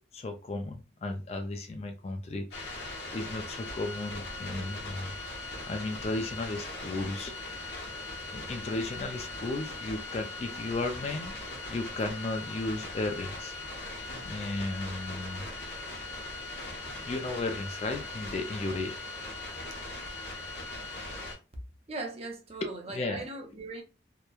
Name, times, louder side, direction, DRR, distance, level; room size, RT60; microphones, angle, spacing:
voice 1, 0.1-5.1 5.4-7.9 8.3-11.3 11.7-13.6 14.2-15.5 16.4-16.7 17.0-19.0 22.6-23.2, left 2 dB, 35° left, 0.3 m, -35 dB
sound 1, 2.5-21.4, left 2 dB, 60° left, 0.9 m, -40 dB
voice 2, 21.9-23.8, right 2 dB, 35° right, 0.5 m, -39 dB
3.0 x 2.1 x 2.2 m
head